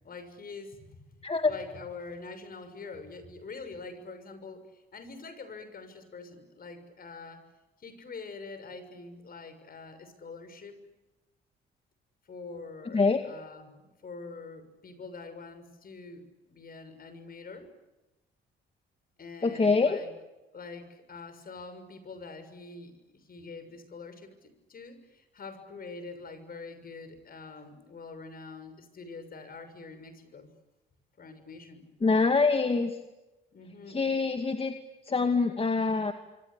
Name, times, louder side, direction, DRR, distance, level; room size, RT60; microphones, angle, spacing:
voice 1, 0.0-7.4 7.8-10.8 12.3-17.7 19.2-20.1 20.5-30.5 31.2-31.9 33.5-34.2, left 4 dB, 50° left, 10 dB, 6.6 m, -45 dB
voice 2, 19.4-20.0 32.0-32.9 33.9-34.7 35.1-36.1, left 4 dB, 30° left, 6 dB, 2.3 m, -25 dB
27.0 x 25.0 x 8.6 m, 1.0 s
cardioid pair, 90°, 20 cm